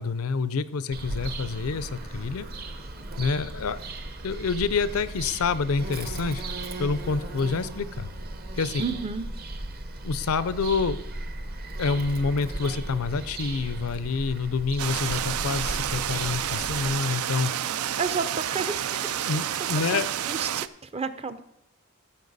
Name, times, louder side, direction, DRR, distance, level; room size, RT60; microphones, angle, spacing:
voice 1, 0.0-2.5 3.2-3.8 4.2-6.4 6.8-8.1 8.5-8.8 10.0-11.0 11.5-17.5 19.3-20.1, left 4 dB, 80° left, 15 dB, 0.5 m, -27 dB
Bird vocalization bird call bird song, 0.9-16.9, right 2 dB, 45° right, 0.9 m, -36 dB
voice 2, 8.8-9.3 18.0-19.3 19.9-20.0 20.3-21.4, right 5 dB, 30° right, 11 dB, 0.5 m, -31 dB
sound 1, 14.8-20.7, right 10 dB, 85° right, 0.4 m, -29 dB
14.5 x 7.1 x 4.0 m, 0.84 s
head